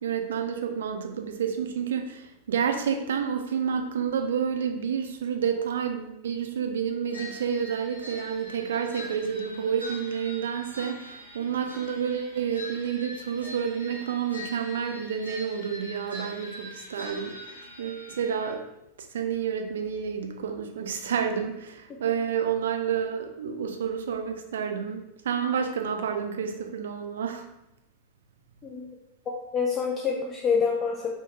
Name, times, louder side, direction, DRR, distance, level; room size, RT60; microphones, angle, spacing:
voice 1, 0.0-18.7 19.0-27.5, right 7 dB, 65° right, 4 dB, 0.3 m, -29 dB
sound 1, 7.1-18.5, left 1 dB, 85° right, 0.7 m, -43 dB
voice 2, 29.3-31.1, left 5 dB, 25° left, -2 dB, 0.3 m, -27 dB
2.6 x 2.1 x 3.0 m, 0.88 s
figure-of-eight pair, 90°, 0 cm